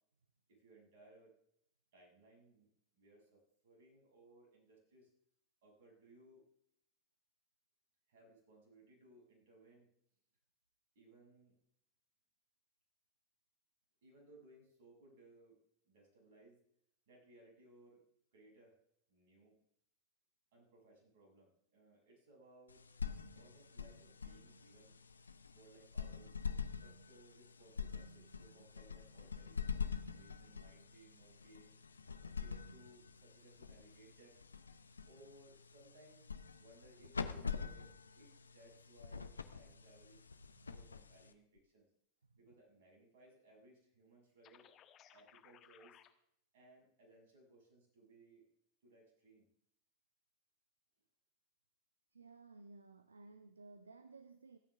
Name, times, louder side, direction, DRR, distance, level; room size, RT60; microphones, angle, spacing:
voice 1, 0.5-1.3 1.9-2.7 2.9-5.1 5.6-6.5 8.1-9.9 10.9-11.6 14.0-15.6 15.9-16.6 17.1-18.0 18.3-18.8 19.1-19.6 20.5-22.8 23.3-25.0 25.5-26.4 26.7-31.7 32.0-34.4 35.1-36.3 36.5-37.9 38.1-40.3 40.7-41.9 42.4-44.7 45.1-46.0 46.5-48.5 48.8-49.5, right 2 dB, 55° right, 6.5 m, -64 dB
sound 1, 22.7-41.6, left 6 dB, 75° left, 0.8 m, -46 dB
sound 2, 44.4-46.1, left 10 dB, 30° left, 1.2 m, -62 dB
voice 2, 52.1-54.6, right 3 dB, 75° right, 0.7 m, -57 dB
28.0 x 9.3 x 3.5 m
figure-of-eight pair, 90°, 0 cm